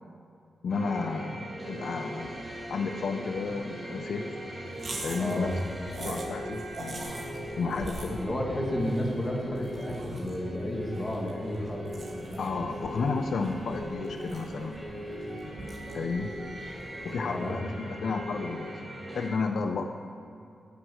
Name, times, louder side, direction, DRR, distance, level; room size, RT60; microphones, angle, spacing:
voice 1, 0.6-2.4 2.7-4.3 5.0-5.6 6.0-7.2 7.6-8.2 12.4-14.8 15.9-16.3 17.0-18.7 19.1-19.9, left 4 dB, 60° left, 5 dB, 0.5 m, -32 dB
sound 1, 0.7-19.3, equal, 15° right, 3.1 m, -39 dB
sound 2, 4.7-17.2, right 2 dB, 40° right, 1.7 m, -43 dB
voice 2, 5.2-5.6 8.2-11.9 17.3-17.6, left 1 dB, 15° left, -1 dB, 1.8 m, -32 dB
10.5 x 9.5 x 6.3 m, 2.6 s
wide cardioid pair, 175°, 0 cm